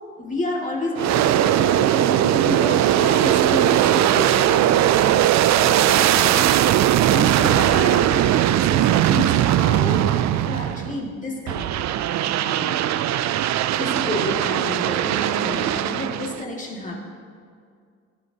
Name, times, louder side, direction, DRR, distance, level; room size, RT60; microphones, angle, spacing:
voice 1, 0.0-5.3 5.5-6.6 7.1-11.8 12.4-12.9 13.8-17.0, left 2 dB, 25° left, -2 dB, 2.2 m, -30 dB
Aircraft, 1.0-11.0 11.5-16.4, right 12 dB, 65° right, 0.4 m, -19 dB
16.0 x 11.5 x 2.9 m, 2.2 s
cardioid pair, 90°, 30 cm